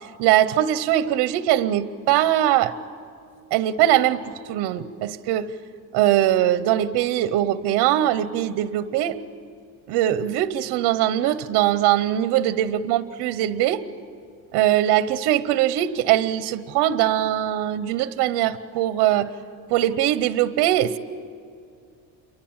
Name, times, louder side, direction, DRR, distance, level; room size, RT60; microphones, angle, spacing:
voice 1, 0.2-2.7 3.5-5.5 5.9-9.2 9.9-13.8 14.5-19.3 19.7-21.0, right 12 dB, 70° right, 13 dB, 0.9 m, -21 dB
28.5 x 24.0 x 8.8 m, 2.4 s
cardioid pair, 175°, 40 cm